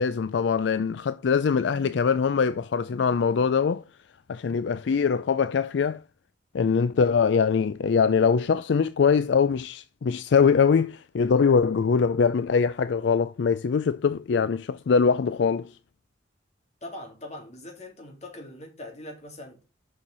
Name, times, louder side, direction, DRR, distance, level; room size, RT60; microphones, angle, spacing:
voice 1, 0.0-3.8 4.3-6.0 6.5-15.7, left 6 dB, 70° left, 0.4 m, -23 dB
voice 2, 16.8-19.6, left 1 dB, 40° left, 3.1 m, -41 dB
6.7 x 5.7 x 6.0 m
head